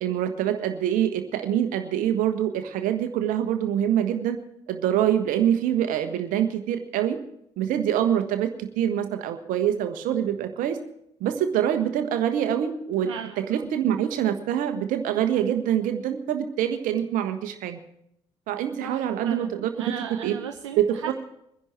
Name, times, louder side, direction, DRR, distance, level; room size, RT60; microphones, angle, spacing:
voice 1, 0.0-4.4 4.7-7.2 7.6-10.8 11.2-17.8 18.5-20.0 20.2-20.3 21.1-21.2, right 10 dB, 60° right, 8 dB, 1.4 m, -25 dB
voice 2, 13.0-13.7 18.8-21.1, right 9 dB, 80° right, 7 dB, 0.7 m, -37 dB
22.5 x 10.5 x 4.6 m, 0.77 s
figure-of-eight pair, 50°, 15 cm